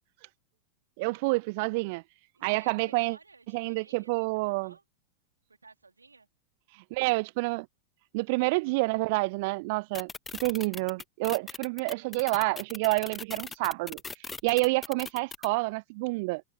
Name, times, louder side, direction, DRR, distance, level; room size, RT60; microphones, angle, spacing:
voice 1, 1.0-2.0 2.4-3.2 3.5-4.7 6.7-7.7 8.1-10.1 10.4-16.4, right 26 dB, 50° right, 0.3 m, -28 dB
voice 2, 2.3-4.8 5.5-6.3, right 4 dB, 80° right, 3.7 m, -56 dB
sound 1, 9.9-15.5, left 4 dB, 15° left, 1.0 m, -39 dB
figure-of-eight pair, 90°, 0 cm